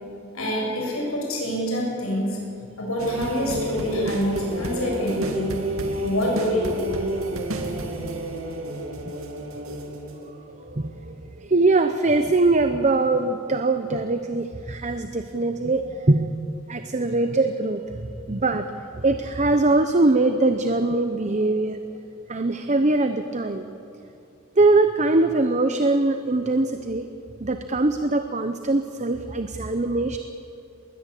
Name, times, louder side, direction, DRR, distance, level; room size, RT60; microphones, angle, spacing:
voice 1, 0.3-2.4 2.8-5.6 6.0-6.8, equal, 85° left, -1 dB, 7.9 m, -26 dB
sound 1, 3.0-11.0 11.4-11.6, right 1 dB, 85° right, 2.5 m, -30 dB
voice 2, 10.7-16.3 16.7-17.8 18.3-18.7 19.0-21.8 22.3-23.6 24.6-27.1 27.4-30.2, right 2 dB, 35° right, 8 dB, 0.8 m, -22 dB
20.5 x 20.5 x 8.4 m, 2.6 s
head